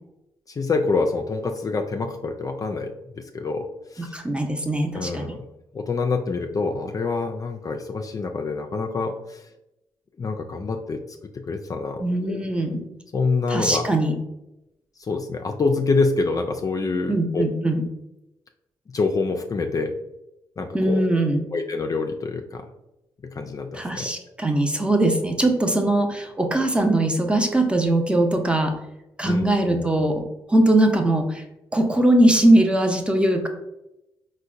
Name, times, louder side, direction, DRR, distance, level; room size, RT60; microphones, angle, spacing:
voice 1, 0.5-4.2 4.9-5.4 5.7-9.5 10.2-12.4 13.1-13.9 15.0-17.4 18.9-19.9 20.6-21.0 21.5-22.7 23.2-24.1 29.2-29.9, left 3 dB, 35° left, 4 dB, 0.4 m, -26 dB
voice 2, 4.0-5.3 12.0-12.8 13.5-14.2 17.1-17.8 20.7-21.4 23.7-28.7 29.2-31.4 31.7-33.5, right 1 dB, 10° right, 4 dB, 0.6 m, -21 dB
4.4 x 2.1 x 2.5 m, 0.90 s
hypercardioid pair, 45°, 10 cm